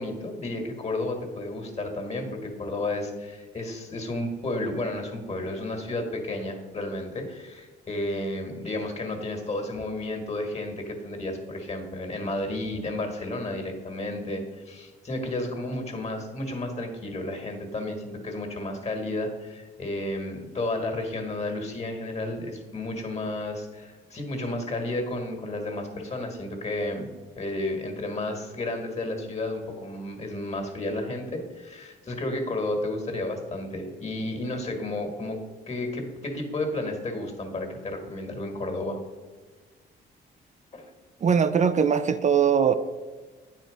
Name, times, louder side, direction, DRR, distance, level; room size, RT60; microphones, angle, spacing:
voice 1, 0.0-27.1 27.4-35.4 35.7-39.0 40.7-40.9, left 2 dB, 35° left, 1.7 m, -32 dB
voice 2, 41.2-42.7, right 7 dB, 35° right, 0.4 m, -21 dB
9.3 x 4.4 x 5.1 m
cardioid pair, 90°, 20 cm